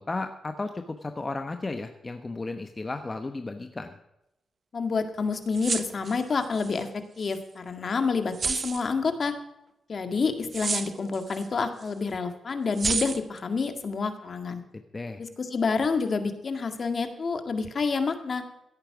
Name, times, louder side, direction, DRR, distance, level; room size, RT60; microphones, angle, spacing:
voice 1, 0.0-4.0 14.7-15.2, left 3 dB, 25° left, 7 dB, 1.1 m, -34 dB
voice 2, 4.7-9.3 9.9-14.6 15.2-18.4, left 4 dB, 50° left, 8 dB, 1.9 m, -28 dB
sound 1, 5.5-6.8 7.2-7.4 8.3-8.9 10.5-11.5 11.8-11.9 12.8-13.4, right 5 dB, 45° right, 1.0 m, -30 dB
16.0 x 8.8 x 6.0 m, 0.87 s
cardioid pair, 80°, 0 cm